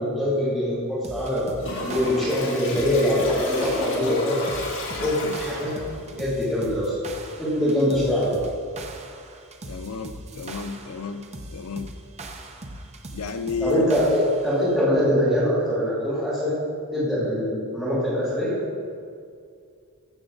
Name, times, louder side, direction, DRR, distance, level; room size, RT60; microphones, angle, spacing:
voice 1, 0.0-1.4 1.8-4.5 5.0-5.7 6.1-6.9 7.4-8.3 13.6-16.6 16.9-18.6, left 1 dB, ahead, -11 dB, 2.7 m, -23 dB
sound 1, 1.0-14.6, right 2 dB, 30° right, 0.8 m, -40 dB
Toilet flush, 1.6-6.0, left 2 dB, 60° left, 2.5 m, -32 dB
voice 2, 5.0-5.4 9.7-11.2 11.5-11.9 13.1-13.9, left 5 dB, 85° left, 8 dB, 0.6 m, -32 dB
14.5 x 7.0 x 3.9 m, 2.3 s
head